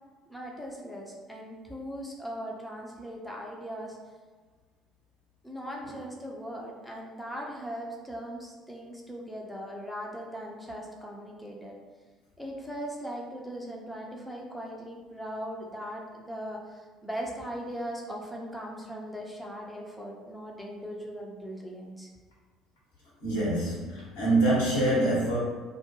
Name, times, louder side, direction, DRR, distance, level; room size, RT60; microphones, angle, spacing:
voice 1, 0.3-4.0 5.4-11.8 12.4-22.1, equal, 5° left, -2 dB, 0.5 m, -39 dB
voice 2, 23.2-25.4, right 1 dB, 75° left, -8 dB, 1.0 m, -25 dB
2.3 x 2.1 x 2.9 m, 1.4 s
figure-of-eight pair, 55°, 0 cm